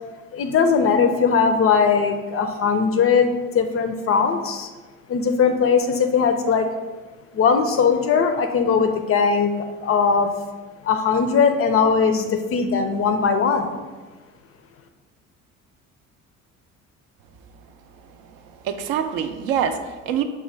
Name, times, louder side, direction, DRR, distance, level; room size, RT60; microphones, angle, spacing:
voice 1, 0.3-4.7 5.1-6.7 7.3-10.3 10.8-13.8, left 5 dB, 35° left, 7 dB, 0.4 m, -19 dB
voice 2, 18.2-20.2, right 8 dB, 60° right, 8 dB, 0.5 m, -25 dB
5.4 x 2.2 x 3.2 m, 1.3 s
hypercardioid pair, 55°, 39 cm